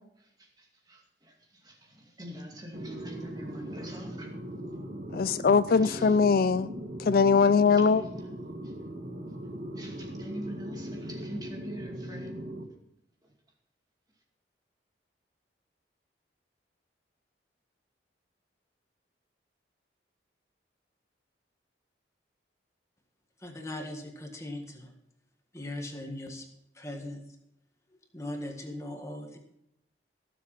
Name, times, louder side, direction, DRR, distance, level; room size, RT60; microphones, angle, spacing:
voice 1, 0.4-4.3 5.8-6.2 7.8-8.7 9.8-12.4, equal, 20° right, 2.3 m, -44 dB
sound 1, 2.7-12.6, equal, 50° right, 1.6 m, -39 dB
voice 2, 5.1-6.7 7.0-8.0, left 5 dB, 50° left, 0.4 m, -21 dB
voice 3, 23.4-24.9 25.5-26.4 26.7-27.2 28.1-29.4, left 1 dB, 15° left, 1.8 m, -39 dB
17.5 x 7.6 x 5.9 m
head